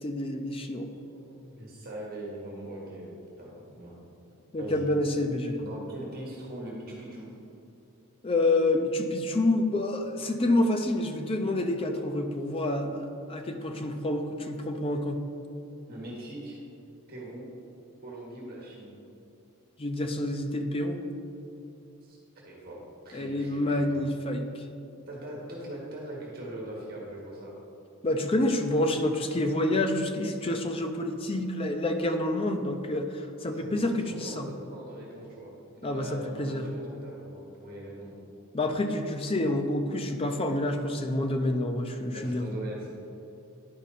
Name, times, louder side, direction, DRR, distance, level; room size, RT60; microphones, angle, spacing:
voice 1, 0.0-0.9 4.5-5.6 8.2-15.2 19.8-21.0 23.1-24.6 28.0-34.5 35.8-36.7 38.5-42.5, left 1 dB, 25° left, 5 dB, 0.5 m, -28 dB
voice 2, 0.9-4.0 4.6-4.8 5.5-7.3 15.9-16.6 17.1-17.5 18.0-18.9 22.0-24.0 25.1-27.5 30.7-30.9 33.5-38.1 42.1-42.9, right 1 dB, 45° right, -4 dB, 1.4 m, -41 dB
10.5 x 5.0 x 4.2 m, 2.8 s
head